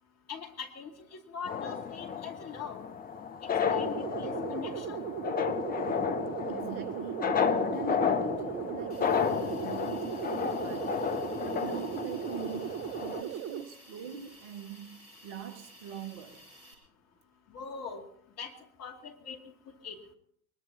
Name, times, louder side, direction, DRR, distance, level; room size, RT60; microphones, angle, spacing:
voice 1, 0.3-2.8 3.4-5.0 17.5-18.0 18.4-18.5 18.8-19.4 19.8-20.0, left 6 dB, 35° left, 2.5 m, -41 dB
sound 1, 1.5-13.2, left 7 dB, 20° left, 0.9 m, -32 dB
sound 2, 3.6-13.6, right 10 dB, 30° right, 0.7 m, -37 dB
voice 2, 6.5-11.0 11.4-16.4, right 7 dB, 50° right, 1.8 m, -43 dB
Hiss, 8.9-16.7, equal, 85° left, 4.3 m, -55 dB
22.0 x 20.5 x 2.9 m
figure-of-eight pair, 80°, 45 cm